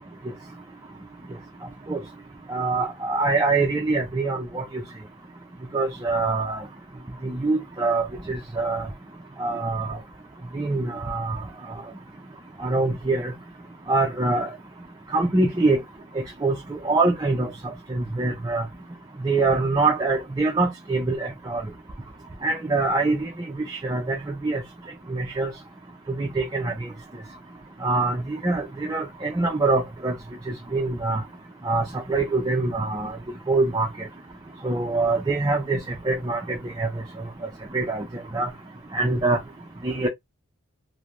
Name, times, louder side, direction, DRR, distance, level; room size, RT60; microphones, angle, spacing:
voice 1, 2.5-4.8 5.7-6.6 7.2-8.9 9.4-10.0 10.5-11.4 12.6-13.3 13.9-14.5 15.1-15.8 16.4-17.5 17.9-18.7 19.2-21.6 22.4-23.3 23.7-24.6 25.1-25.5 26.2-26.9 27.8-30.2 30.5-31.2 31.6-33.2 33.5-34.1 34.6-37.0 37.7-38.1 38.3-38.5 38.9-39.4 39.8-40.1, right 3 dB, 20° right, 0.4 m, -24 dB
3.1 x 2.0 x 2.5 m
head